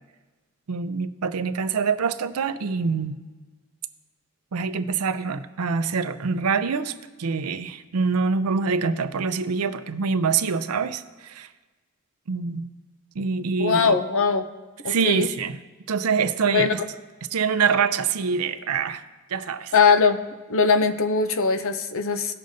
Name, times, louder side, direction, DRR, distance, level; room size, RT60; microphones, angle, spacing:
voice 1, 0.7-3.2 4.5-6.9 7.2-11.5 12.3-12.7 13.2-14.0 14.8-15.6 15.9-16.8 17.3-19.0 19.3-19.7, right 5 dB, 90° right, 11 dB, 0.5 m, -25 dB
voice 2, 13.6-14.5 14.8-15.3 16.5-16.7 19.7-22.3, left 5 dB, 65° left, 8 dB, 0.6 m, -21 dB
17.5 x 6.4 x 2.7 m, 1.3 s
head